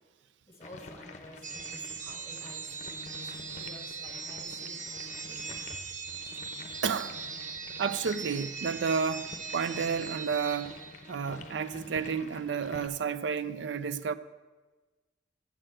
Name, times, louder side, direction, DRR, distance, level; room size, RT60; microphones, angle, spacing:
voice 1, 0.5-5.9, left 1 dB, 15° left, 1.6 m, -51 dB
sound 1, 0.6-12.9, left 3 dB, 40° left, 0.8 m, -48 dB
sound 2, 1.4-11.3, right 5 dB, 45° right, 0.7 m, -40 dB
voice 2, 6.8-7.2 7.8-10.8 11.1-14.1, right 6 dB, 75° right, 0.4 m, -31 dB
7.7 x 6.5 x 7.6 m
head